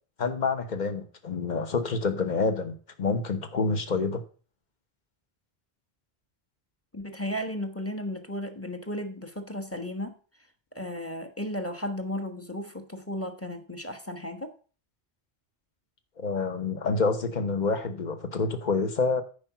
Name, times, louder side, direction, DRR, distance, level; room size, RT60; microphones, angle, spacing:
voice 1, 0.2-4.2 16.2-19.2, left 4 dB, 45° left, 1.1 m, -27 dB
voice 2, 6.9-10.1 10.7-14.5, left 1 dB, 15° left, 1.1 m, -34 dB
9.7 x 5.1 x 5.8 m
omnidirectional pair, 1.1 m